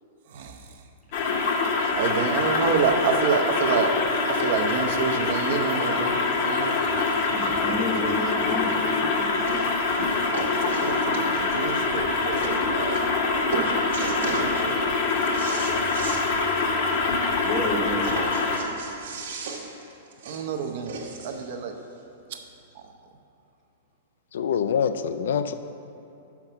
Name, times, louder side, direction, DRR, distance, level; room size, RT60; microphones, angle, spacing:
voice 1, 0.2-0.8 2.0-3.9 4.3-6.8 10.6-14.8 20.2-21.0 21.2-21.8 22.3-22.4 22.7-22.9, right 6 dB, 50° right, 4 dB, 0.6 m, -28 dB
sound 1, 1.1-18.6, left 3 dB, 40° left, 0.8 m, -25 dB
voice 2, 7.3-9.5 14.7-14.9 17.4-18.2, left 1 dB, 5° left, -3 dB, 0.8 m, -31 dB
sound 2, 8.7-8.8 9.5-9.7 10.0-11.6 12.1-12.2 12.4-12.6 13.0-13.3 13.5-14.5 14.9-16.2 16.6-16.7 17.0-17.1 18.0-21.5 22.3-22.4, right 4 dB, 75° right, 1.4 m, -34 dB
voice 3, 24.3-25.5, left 7 dB, 70° left, 10 dB, 0.3 m, -25 dB
6.0 x 5.9 x 6.7 m, 2.9 s
supercardioid pair, 170°, 0 cm